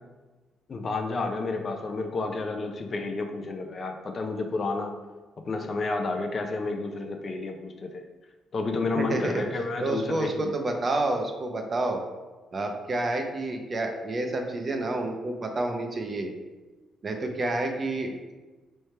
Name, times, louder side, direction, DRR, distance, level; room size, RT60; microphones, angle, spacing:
voice 1, 0.7-4.9 5.4-8.0 8.5-10.5, left 3 dB, 40° left, 4 dB, 0.5 m, -30 dB
voice 2, 9.0-12.0 12.5-16.3 17.0-18.3, right 2 dB, 35° right, 4 dB, 0.6 m, -29 dB
4.3 x 3.3 x 3.3 m, 1.2 s
cardioid pair, 90°, 0 cm